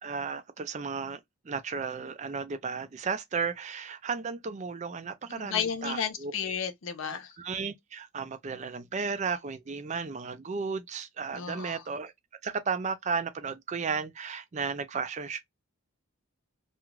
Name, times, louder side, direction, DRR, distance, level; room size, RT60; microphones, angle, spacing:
voice 1, 0.0-6.3 7.0-12.1 12.4-15.4, right 5 dB, 30° right, 0.3 m, -34 dB
voice 2, 5.3-7.3 11.3-11.8, left 7 dB, 65° left, 0.5 m, -33 dB
2.4 x 2.3 x 3.0 m
head